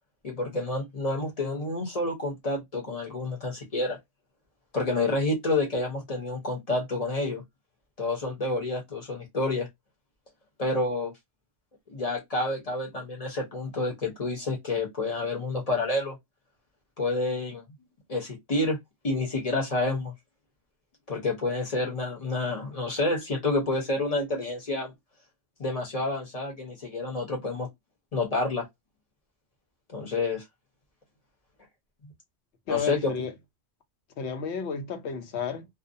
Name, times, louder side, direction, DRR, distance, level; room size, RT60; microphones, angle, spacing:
voice 1, 0.2-4.0 4.7-7.4 8.0-9.7 10.6-11.1 11.9-16.2 17.0-17.6 18.1-18.8 19.0-20.1 21.1-24.9 25.6-27.7 28.1-28.7 29.9-30.4 32.0-32.1 32.7-33.1, left 2 dB, 35° left, 0.8 m, -29 dB
voice 2, 32.7-33.3 34.2-35.7, left 6 dB, 70° left, 0.9 m, -31 dB
2.5 x 2.1 x 2.6 m
omnidirectional pair, 1.2 m